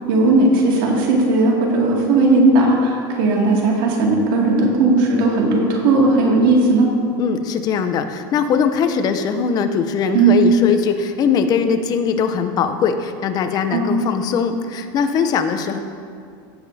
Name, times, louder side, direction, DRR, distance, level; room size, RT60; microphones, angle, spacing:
voice 1, 0.1-6.9 10.1-10.5 13.7-14.0, right 2 dB, 75° right, -2 dB, 2.3 m, -16 dB
voice 2, 7.2-15.8, left 6 dB, 35° left, 8 dB, 0.7 m, -20 dB
16.0 x 7.5 x 2.8 m, 2.3 s
supercardioid pair, 145°, 12 cm